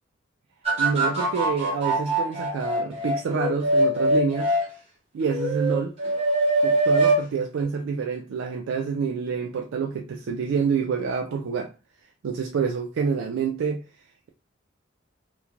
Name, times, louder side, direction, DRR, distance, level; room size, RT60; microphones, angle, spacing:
sound 1, 0.6-4.7 5.2-7.2 7.6-7.7, right 1 dB, 30° right, 0.9 m, -23 dB
voice 1, 0.8-4.5 5.1-5.9 6.6-11.7 12.2-13.8, right 5 dB, 80° right, 0.3 m, -27 dB
2.5 x 2.1 x 2.9 m
head